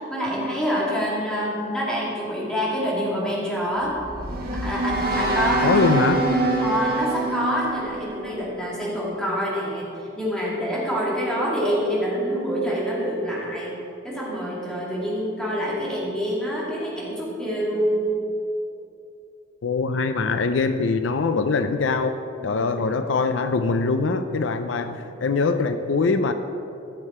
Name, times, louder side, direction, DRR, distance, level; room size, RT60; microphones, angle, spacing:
voice 1, 0.0-4.0 4.6-5.8 6.6-9.9 10.2-13.7 14.0-18.1 22.4-22.9, equal, 5° left, -6 dB, 2.2 m, -26 dB
sound 1, 3.8-9.0, right 2 dB, 50° right, 1.4 m, -25 dB
voice 2, 5.6-6.3 19.6-26.3, left 4 dB, 70° left, 9 dB, 0.5 m, -23 dB
14.0 x 6.7 x 4.3 m, 2.7 s
head